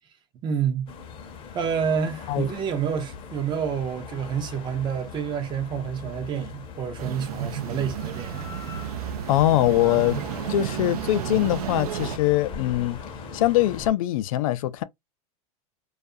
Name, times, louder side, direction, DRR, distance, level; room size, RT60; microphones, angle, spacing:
voice 1, 0.4-0.9 1.5-8.4, right 7 dB, 25° right, 0.6 m, -28 dB
sound 1, 0.9-13.9, left 6 dB, 30° left, 0.7 m, -40 dB
sound 2, 7.0-12.2, right 10 dB, 80° right, 0.5 m, -32 dB
voice 2, 9.3-10.2 10.5-13.0 13.3-14.8, left 14 dB, 65° left, 0.4 m, -22 dB
2.4 x 2.3 x 2.6 m
supercardioid pair, 135°, 19 cm